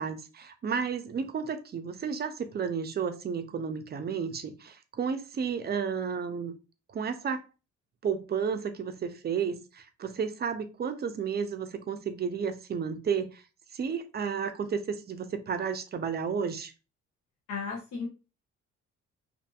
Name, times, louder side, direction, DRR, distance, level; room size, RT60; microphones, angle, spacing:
voice 1, 0.0-6.5 6.9-7.4 8.0-13.4 13.7-16.7, right 6 dB, 35° right, 0.4 m, -32 dB
voice 2, 17.5-18.1, left 5 dB, 80° left, 0.8 m, -34 dB
2.6 x 2.6 x 2.3 m
cardioid pair, 90°, 30 cm